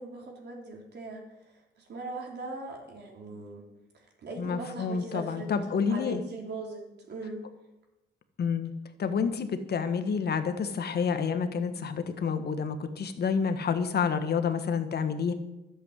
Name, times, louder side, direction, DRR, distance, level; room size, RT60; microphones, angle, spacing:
voice 1, 0.0-3.7 3.9-5.5 5.9-7.4, right 2 dB, 55° right, 0 dB, 3.9 m, -40 dB
voice 2, 4.4-6.2 8.4-8.7 9.0-15.3, left 6 dB, 55° left, 9 dB, 1.5 m, -29 dB
12.0 x 8.0 x 8.3 m, 0.97 s
cardioid pair, 90°, 20 cm